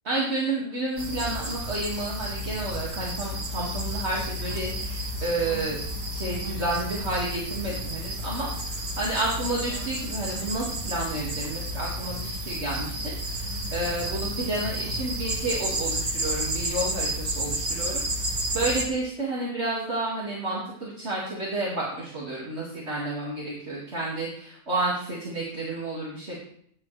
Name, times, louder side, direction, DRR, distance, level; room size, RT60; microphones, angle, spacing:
voice 1, 0.0-5.8 6.1-26.4, right 2 dB, 45° right, -6 dB, 2.7 m, -31 dB
sound 1, 1.0-18.8, right 1 dB, 65° right, 2.8 m, -31 dB
15.5 x 10.0 x 3.4 m, 0.66 s
omnidirectional pair, 1.6 m